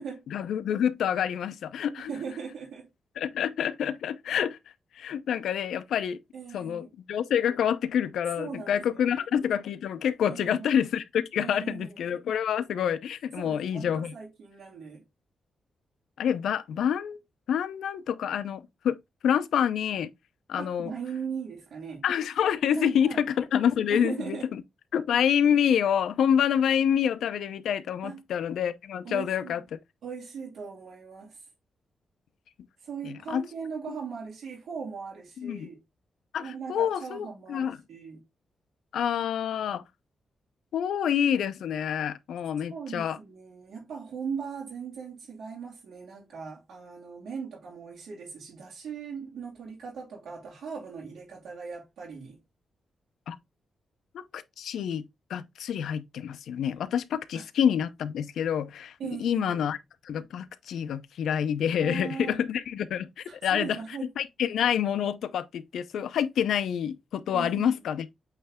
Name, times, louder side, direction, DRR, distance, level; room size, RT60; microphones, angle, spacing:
voice 1, 0.3-2.1 3.2-4.6 5.0-6.2 6.5-14.1 16.2-17.2 17.5-19.0 19.2-20.1 20.5-20.9 22.0-24.6 24.9-29.6 33.0-33.4 33.9-34.0 35.4-35.7 36.3-37.8 38.9-39.8 40.7-43.2 53.3-53.4 54.3-59.8 60.0-63.1 63.4-63.8 64.2-68.1, left 8 dB, 90° left, 0.7 m, -27 dB
voice 2, 2.0-2.9 6.3-6.9 8.4-9.2 10.3-10.7 11.4-12.0 13.4-15.0 20.6-22.0 22.7-23.2 23.9-24.5 28.0-28.2 29.0-29.6 30.0-31.5 32.8-35.8 36.4-38.2 42.7-52.4 57.3-57.5 59.0-59.6 61.8-62.4 63.3-64.1 67.3-67.8, right 6 dB, 80° right, 2.5 m, -39 dB
8.4 x 3.3 x 3.6 m
wide cardioid pair, 145°, 0 cm